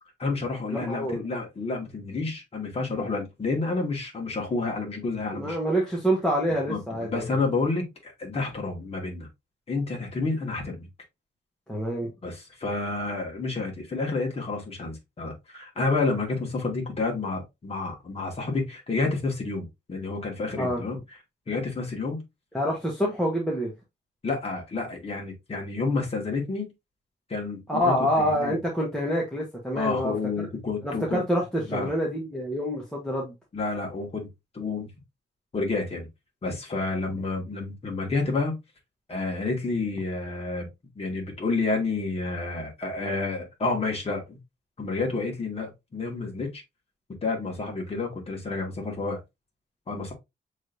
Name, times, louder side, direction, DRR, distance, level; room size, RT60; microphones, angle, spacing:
voice 1, 0.2-5.6 6.7-9.3 9.7-10.9 12.2-21.0 21.5-22.2 24.2-26.7 27.3-28.6 29.7-31.2 31.7-31.9 33.5-34.3 34.5-34.9 35.5-36.1 36.4-38.6 39.1-40.7 41.0-44.4 44.8-46.6 47.2-49.2 49.9-50.1, left 3 dB, 30° left, 1.8 m, -29 dB
voice 2, 0.7-1.2 5.3-7.4 11.7-12.1 20.6-20.8 22.5-23.7 27.7-30.5 30.8-33.3 37.1-37.2, equal, 5° left, 1.2 m, -27 dB
6.2 x 3.3 x 2.5 m
wide cardioid pair, 145°, 19 cm